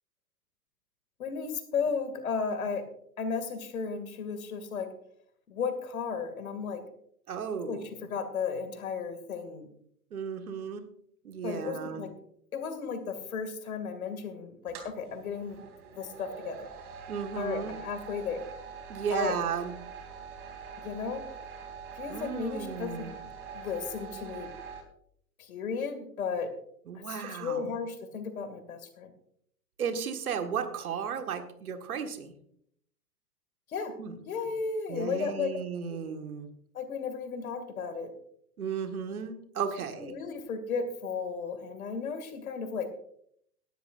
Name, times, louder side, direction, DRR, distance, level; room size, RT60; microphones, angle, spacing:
voice 1, 1.2-2.8 3.2-4.9 5.5-6.8 7.7-9.7 11.4-12.1 12.5-15.6 15.9-16.6 17.4-18.4 19.1-19.4 20.8-21.2 22.0-23.1 23.5-24.5 25.4-26.5 26.9-29.1 33.7-33.9 34.3-35.6 35.9-36.0 36.7-38.1 40.0-42.9, left 5 dB, 60° left, 9 dB, 2.4 m, -34 dB
voice 2, 7.3-7.9 10.1-10.8 11.2-12.0 17.1-17.8 18.9-19.7 22.1-23.1 26.9-27.8 29.8-32.3 34.0-34.1 34.9-36.5 38.6-40.2, right 7 dB, 65° right, 7 dB, 1.8 m, -34 dB
sound 1, 14.7-24.8, right 6 dB, 25° right, 2.9 m, -44 dB
18.5 x 12.5 x 2.6 m, 0.68 s
figure-of-eight pair, 100°, 47 cm